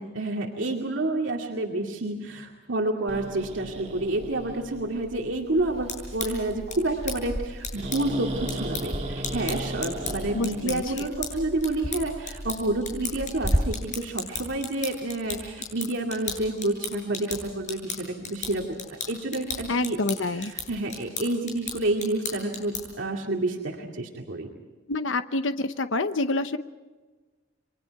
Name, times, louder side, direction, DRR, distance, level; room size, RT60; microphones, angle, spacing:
voice 1, 0.0-18.6 19.1-20.0 20.4-24.5, right 2 dB, 75° right, 0 dB, 2.4 m, -29 dB
Growling, 3.1-13.6, right 1 dB, 35° right, 1.7 m, -34 dB
sound 1, 5.7-23.0, left 4 dB, 40° left, 7.6 m, -37 dB
voice 2, 10.3-11.1 19.7-20.5 24.9-26.6, left 2 dB, 80° left, 10 dB, 0.9 m, -27 dB
29.5 x 23.5 x 4.7 m, 1.3 s
head